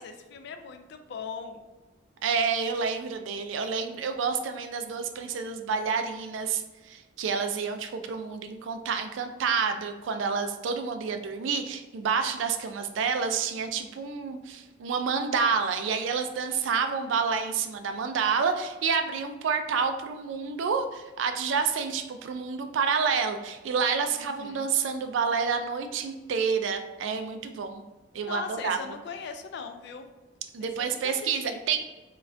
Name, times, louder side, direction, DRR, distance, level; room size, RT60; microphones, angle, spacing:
voice 1, 0.0-1.6 24.1-24.6 28.2-30.0 30.6-31.6, left 5 dB, 65° left, 7 dB, 0.4 m, -40 dB
voice 2, 2.2-27.8 28.1-28.8 30.5-31.8, right 5 dB, 75° right, 7 dB, 0.3 m, -29 dB
4.1 x 2.3 x 2.6 m, 1.2 s
head